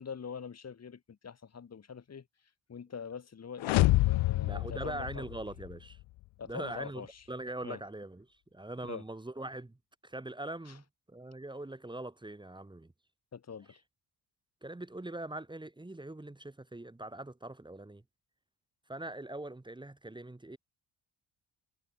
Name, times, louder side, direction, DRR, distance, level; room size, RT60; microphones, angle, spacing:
voice 1, 0.0-2.3 2.7-5.2 6.4-7.2 7.6-7.8 8.8-9.0 10.7-10.8 13.3-13.8, left 6 dB, 35° left, 2.7 m, -44 dB
sound 1, 3.6-5.7, left 19 dB, 85° left, 0.6 m, -27 dB
voice 2, 4.3-6.0 6.5-7.0 7.3-9.8 10.0-12.9 14.6-18.0 18.9-20.6, right 2 dB, 10° right, 3.1 m, -42 dB
cardioid pair, 155°, 46 cm